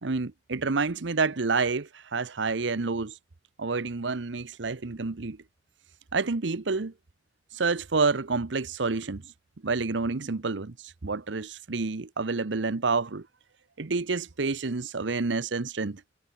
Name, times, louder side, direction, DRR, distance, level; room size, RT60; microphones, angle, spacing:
voice 1, 0.0-3.2 3.6-5.4 6.1-6.9 7.5-9.2 9.6-13.3 13.8-16.0, right 4 dB, 75° right, 0.9 m, -28 dB
head